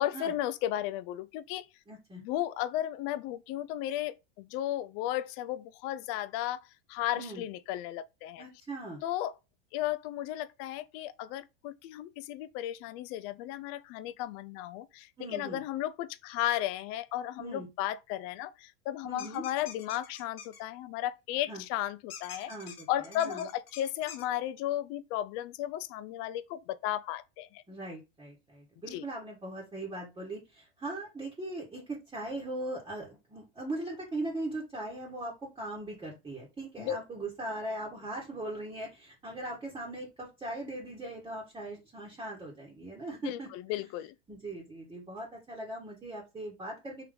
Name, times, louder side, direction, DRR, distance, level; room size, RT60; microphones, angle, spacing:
voice 1, 0.0-1.7 2.2-8.4 9.0-9.3 9.7-22.5 22.9-27.6 28.9-29.1 36.8-37.0 43.2-44.1, left 13 dB, 50° left, 0.5 m, -34 dB
voice 2, 1.9-2.2 7.2-7.4 8.4-9.0 15.2-15.6 17.4-17.7 19.0-19.4 21.5-21.6 22.5-23.5 27.7-43.5 44.3-47.1, right 2 dB, 15° right, 1.2 m, -40 dB
sound 1, 19.2-20.6 22.1-24.3, left 7 dB, 80° left, 1.1 m, -46 dB
3.7 x 3.0 x 3.4 m
hypercardioid pair, 105°, 29 cm